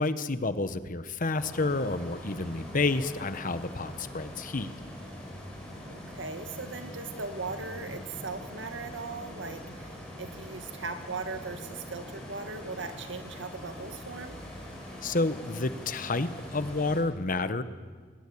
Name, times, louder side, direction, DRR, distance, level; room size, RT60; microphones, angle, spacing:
voice 1, 0.0-4.7 15.0-17.6, left 3 dB, 45° left, 12 dB, 1.1 m, -29 dB
sound 1, 1.4-17.0, equal, 5° left, 7.6 m, -43 dB
voice 2, 5.9-14.4, right 3 dB, 85° right, 7 dB, 2.1 m, -39 dB
22.0 x 20.5 x 8.6 m, 1.5 s
head